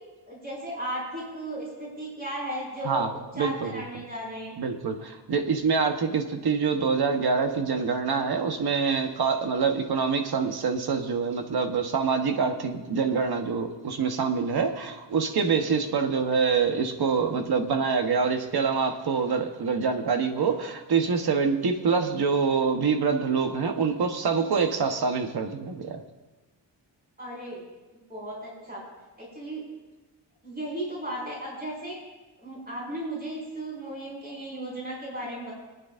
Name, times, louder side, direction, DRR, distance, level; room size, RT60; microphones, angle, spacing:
voice 1, 0.3-4.5 27.2-27.6 28.1-28.8 29.2-29.6 30.4-32.0 32.4-35.5, right 1 dB, 20° right, -5 dB, 5.2 m, -35 dB
voice 2, 2.8-3.8 4.6-26.0, right 5 dB, 60° right, 5 dB, 1.2 m, -25 dB
27.5 x 9.4 x 2.6 m, 1.2 s
wide cardioid pair, 145°, 42 cm